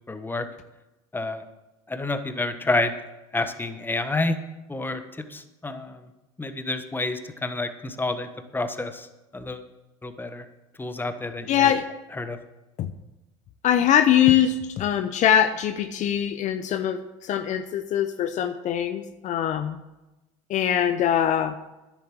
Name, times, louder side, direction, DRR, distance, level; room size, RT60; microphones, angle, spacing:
voice 1, 0.1-0.4 1.1-1.4 1.9-2.9 3.3-4.4 4.7-6.0 6.4-8.3 8.5-9.1 9.3-9.6 10.0-10.4 10.8-11.7 12.2-12.4, left 2 dB, 15° left, 9 dB, 1.3 m, -29 dB
voice 2, 11.5-11.9 12.8-12.9 13.6-19.8 20.5-21.6, left 10 dB, 50° left, 10 dB, 0.8 m, -22 dB
10.5 x 8.3 x 7.7 m, 1.0 s
hypercardioid pair, 75°, 15 cm